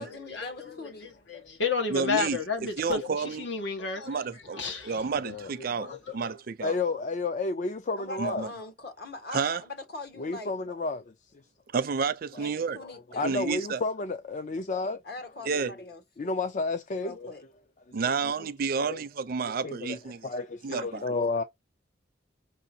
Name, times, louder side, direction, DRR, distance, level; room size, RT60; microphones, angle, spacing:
voice 1, 0.0-1.1 3.2-3.4 7.9-10.5 12.4-13.6 15.0-16.3 17.0-17.4 20.7-21.0, left 2 dB, 60° left, 1.3 m, -42 dB
voice 2, 1.3-4.2 4.6-5.1 5.8-5.9, left 5 dB, 80° left, 1.3 m, -31 dB
voice 3, 1.9-3.5 4.0-6.8 8.2-8.5 9.3-9.6 11.7-12.8 13.2-13.8 15.5-15.7 17.9-20.3 20.6-20.8, right 5 dB, 55° right, 0.5 m, -30 dB
voice 4, 5.9-6.2 6.6-8.4 10.2-11.1 12.8-15.0 15.5-15.6 16.2-17.3 18.1-18.2 18.8-19.0 19.6-21.4, left 3 dB, 40° left, 0.4 m, -32 dB
6.0 x 2.7 x 2.7 m
head